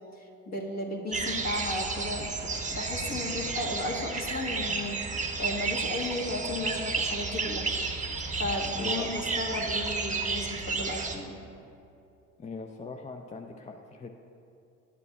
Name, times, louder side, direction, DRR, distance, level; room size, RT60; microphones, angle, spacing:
voice 1, 0.5-5.1 5.4-7.6 8.3-11.4, left 1 dB, 45° left, -2 dB, 1.4 m, -34 dB
sound 1, 1.1-11.2, right 4 dB, 20° right, 0.8 m, -32 dB
voice 2, 8.8-9.1 12.4-14.1, left 4 dB, 20° left, 3 dB, 0.4 m, -41 dB
11.0 x 8.1 x 2.2 m, 2.7 s
hypercardioid pair, 65°, 37 cm